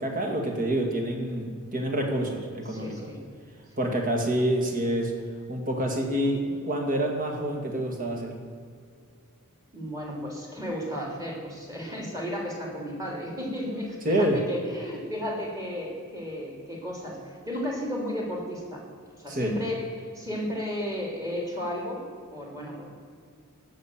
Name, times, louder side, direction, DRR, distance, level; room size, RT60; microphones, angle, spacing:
voice 1, 0.0-3.1 3.8-5.1 5.5-8.3 14.0-14.4 19.3-19.5, right 1 dB, 40° right, 2 dB, 2.2 m, -27 dB
voice 2, 2.7-3.2 9.7-18.8 19.2-22.0 22.3-22.9, equal, 15° right, -2 dB, 3.2 m, -33 dB
16.0 x 6.5 x 7.5 m, 2.1 s
head